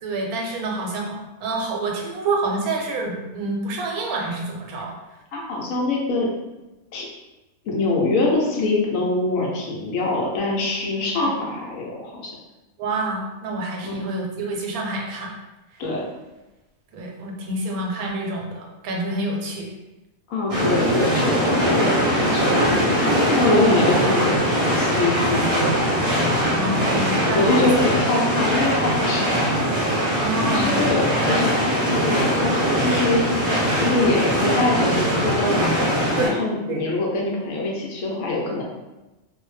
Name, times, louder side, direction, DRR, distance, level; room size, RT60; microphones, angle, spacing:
voice 1, 0.0-4.9 11.2-11.4 12.8-15.4 15.7-15.8 16.9-19.7 26.5-27.9 30.2-30.7 36.2-36.4 36.7-36.8, right 2 dB, 85° right, 0 dB, 1.1 m, -28 dB
voice 2, 5.3-6.3 6.9-7.1 7.7-12.3 13.8-14.0 15.8-16.1 20.3-25.8 27.3-29.3 30.1-33.2 33.8-35.8 36.2-38.6, left 2 dB, 70° left, -2 dB, 1.0 m, -24 dB
sound 1, 20.5-36.3, equal, 40° right, 0.5 m, -21 dB
2.6 x 2.1 x 3.1 m, 1.1 s
omnidirectional pair, 1.5 m